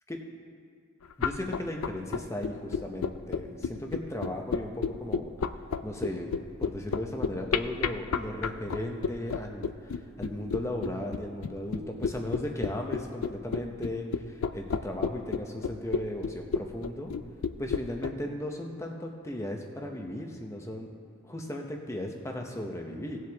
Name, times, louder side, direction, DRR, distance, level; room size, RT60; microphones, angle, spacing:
sound 1, 1.1-18.1, left 6 dB, 80° left, 0.4 m, -31 dB
voice 1, 1.2-5.3 5.8-6.3 6.6-17.1 17.6-20.9 21.2-23.2, left 1 dB, 15° left, 2 dB, 0.8 m, -36 dB
18.0 x 7.8 x 3.5 m, 2.2 s
head